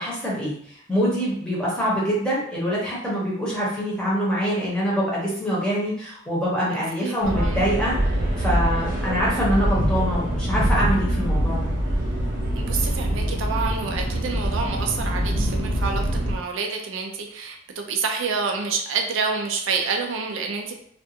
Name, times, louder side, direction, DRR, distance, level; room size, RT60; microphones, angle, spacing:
voice 1, 0.0-8.0 8.4-11.7, equal, 5° left, -7 dB, 0.8 m, -25 dB
voice 2, 6.6-7.7 12.5-20.8, right 5 dB, 85° right, 3 dB, 0.4 m, -28 dB
sound 1, 7.2-16.3, equal, 45° right, 0.8 m, -24 dB
2.5 x 2.2 x 2.7 m, 0.68 s
head